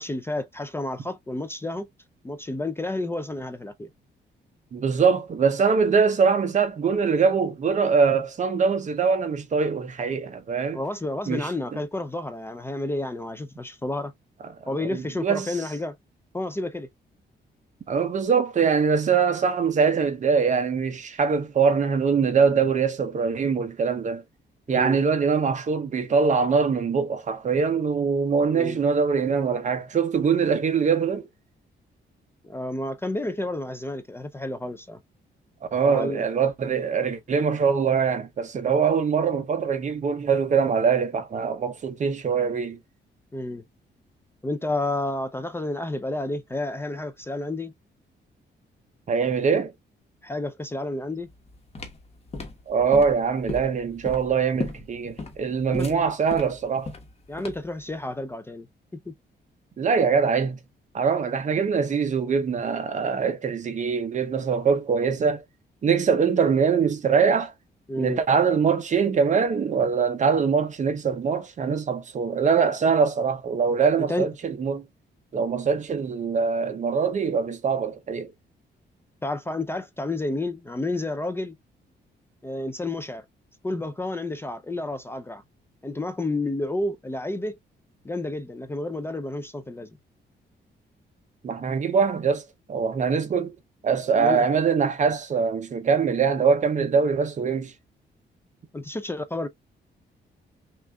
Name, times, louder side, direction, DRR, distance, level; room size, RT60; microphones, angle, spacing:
voice 1, 0.0-1.9 2.2-3.9 10.7-14.1 14.7-15.9 16.3-16.9 24.7-25.0 28.5-28.8 32.4-35.0 35.8-36.3 43.3-43.6 44.4-47.7 50.2-51.3 55.7-56.0 57.3-58.7 58.9-59.2 67.9-68.2 74.1-74.3 79.2-81.6 82.4-83.2 83.6-85.4 85.8-87.6 88.0-89.9 94.2-94.4 98.7-99.5, left 2 dB, 15° left, 0.4 m, -30 dB
voice 2, 4.7-10.8 11.3-11.5 14.8-15.5 17.9-24.2 24.7-31.3 35.7-42.8 49.1-49.7 52.7-56.9 59.8-60.6 60.9-65.4 65.8-67.5 68.0-74.8 75.3-78.3 91.4-92.4 92.7-93.5 93.8-97.7, right 5 dB, 40° right, 0.7 m, -23 dB
sound 1, 51.3-57.8, left 3 dB, 35° left, 1.1 m, -36 dB
6.0 x 2.5 x 2.2 m
cardioid pair, 135°, 19 cm